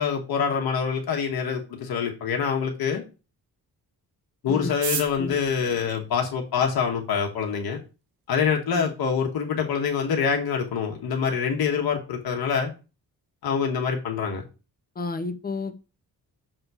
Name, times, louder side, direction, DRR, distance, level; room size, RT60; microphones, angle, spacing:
voice 1, 0.0-3.0 4.4-7.8 8.3-12.7 13.4-14.4, left 6 dB, 85° left, 2 dB, 1.2 m, -25 dB
sound 1, 4.6-6.9 7.7-7.8 8.0-8.1 8.4-8.9 9.2-9.3 9.5-9.9 10.2-10.4 10.7-11.0, right 7 dB, 70° right, 1.1 m, -35 dB
voice 2, 15.0-15.8, left 3 dB, 25° left, 10 dB, 0.7 m, -31 dB
6.8 x 3.6 x 4.7 m, 0.32 s
wide cardioid pair, 135°, 36 cm